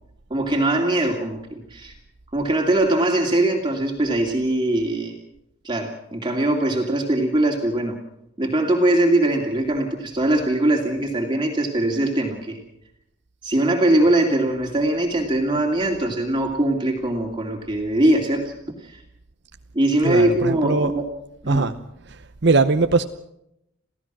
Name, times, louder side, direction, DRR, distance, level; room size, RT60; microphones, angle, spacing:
voice 1, 0.3-1.4 1.7-1.9 2.3-5.1 5.6-8.0 8.4-12.6 13.4-18.5 18.8-19.0 19.7-21.0 21.4-21.7, right 1 dB, 20° right, 2.6 m, -21 dB
voice 2, 20.0-20.9 21.5-21.7 22.1-23.0, right 3 dB, 55° right, 0.9 m, -20 dB
28.0 x 16.5 x 6.2 m
head